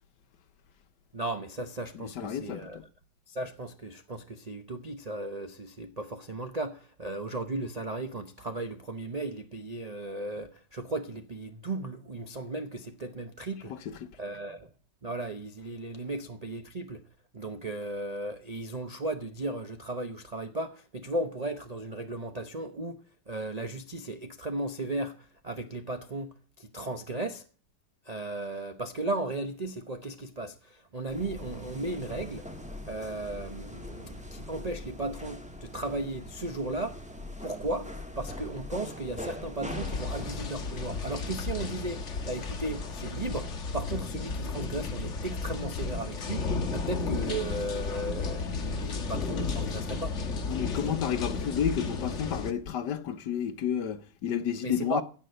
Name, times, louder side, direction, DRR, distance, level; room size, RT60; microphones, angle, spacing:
voice 1, 1.1-2.8 3.3-13.8 14.2-14.7 15.0-17.0 17.3-27.4 28.0-32.5 32.9-37.0 37.4-50.2 50.7-51.0 54.6-55.0, right 2 dB, 60° right, 0.4 m, -36 dB
voice 2, 1.9-2.8 13.7-14.1 50.5-55.0, left 8 dB, 65° left, 1.4 m, -31 dB
sound 1, 31.1-43.7, left 1 dB, 5° right, 1.2 m, -42 dB
sound 2, 39.7-52.5, left 4 dB, 40° left, 1.4 m, -33 dB
16.5 x 6.1 x 7.8 m
omnidirectional pair, 2.1 m